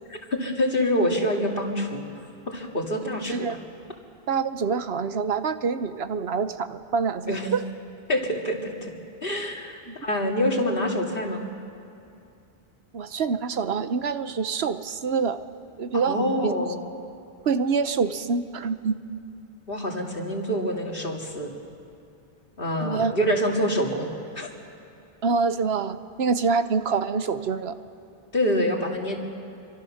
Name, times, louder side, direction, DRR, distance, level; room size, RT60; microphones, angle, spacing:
voice 1, 0.3-2.1 2.5-3.6 7.3-7.5 8.1-8.9 9.2-11.4 15.9-16.8 19.7-21.5 22.6-24.5 28.3-29.2, equal, 60° left, 1 dB, 2.6 m, -26 dB
voice 2, 4.3-7.6 9.9-10.0 12.9-15.4 15.8-16.7 17.5-19.0 22.8-23.1 25.2-27.7, right 5 dB, 75° right, 11 dB, 1.1 m, -26 dB
26.0 x 24.5 x 6.5 m, 2.6 s
omnidirectional pair, 1.0 m